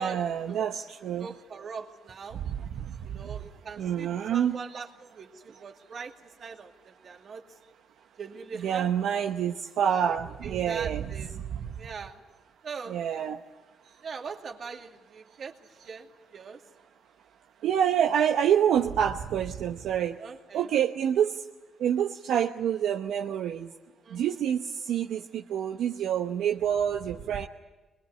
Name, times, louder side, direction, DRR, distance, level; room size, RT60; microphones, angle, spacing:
voice 1, 0.0-1.3 2.3-3.3 3.8-4.6 8.6-11.7 12.9-13.4 17.6-20.2 20.5-21.4 21.8-23.7 24.1-27.5, right 9 dB, 75° right, 4 dB, 0.9 m, -27 dB
voice 2, 1.2-2.4 3.1-6.1 6.4-7.4 8.2-8.9 10.1-10.2 10.4-11.4 11.8-12.2 12.6-13.0 14.0-16.6 20.2-20.7 24.0-24.3, right 5 dB, 55° right, 3 dB, 2.4 m, -41 dB
23.0 x 21.5 x 9.7 m, 1.2 s
cardioid pair, 90°, 0 cm